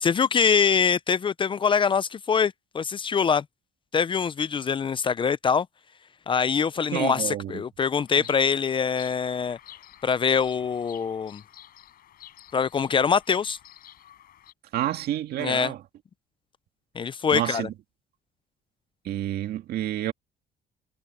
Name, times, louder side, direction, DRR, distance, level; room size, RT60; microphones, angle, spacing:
voice 1, 0.0-3.4 3.9-5.7 6.3-9.6 10.0-11.4 12.5-13.6 15.4-15.7 17.0-17.7, left 6 dB, 30° left, 0.5 m, -24 dB
voice 2, 6.9-7.6 14.7-15.8 17.3-17.7 19.0-20.1, right 12 dB, 70° right, 2.1 m, -29 dB
Bird vocalization bird call bird song, 8.1-14.5, left 12 dB, 65° left, 4.7 m, -50 dB
cardioid pair, 110°, 17 cm